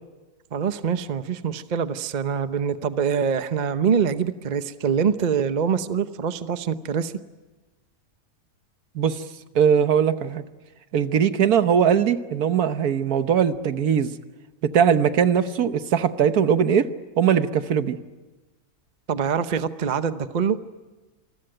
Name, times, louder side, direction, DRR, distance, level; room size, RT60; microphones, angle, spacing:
voice 1, 0.5-7.1 19.1-20.6, right 7 dB, 35° right, 11 dB, 0.7 m, -24 dB
voice 2, 9.5-10.4 10.9-14.1 14.6-16.9 17.2-18.0, right 8 dB, 65° right, 11 dB, 1.4 m, -20 dB
27.5 x 21.0 x 7.9 m, 1.2 s
omnidirectional pair, 1.7 m